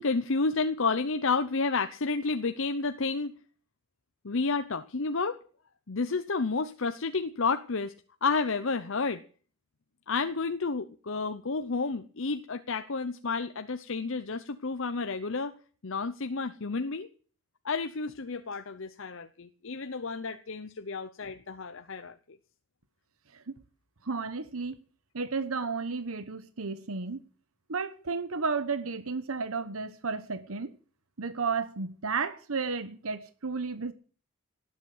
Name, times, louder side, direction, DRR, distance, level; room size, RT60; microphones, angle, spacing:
voice 1, 0.0-3.4 4.2-5.4 5.9-7.9 8.2-9.2 10.1-15.6 15.8-17.1 17.6-22.4, left 4 dB, 65° left, 0.8 m, -31 dB
voice 2, 24.0-24.8 25.1-27.2 27.7-30.7 31.2-33.9, right 4 dB, 80° right, 1.1 m, -33 dB
18.5 x 8.2 x 7.8 m
head